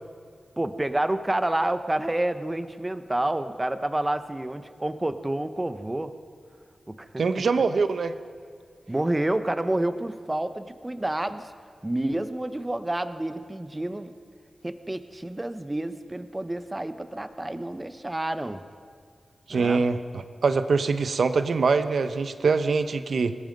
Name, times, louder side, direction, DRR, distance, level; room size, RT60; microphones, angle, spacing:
voice 1, 0.6-6.1 6.9-7.2 8.9-11.5 11.8-14.1 14.6-18.6 19.5-19.8, right 1 dB, 15° right, 10 dB, 1.0 m, -29 dB
voice 2, 7.2-8.1 19.5-23.4, right 4 dB, 75° right, 10 dB, 1.1 m, -24 dB
25.5 x 20.0 x 5.4 m, 2.1 s
wide cardioid pair, 100°, 0 cm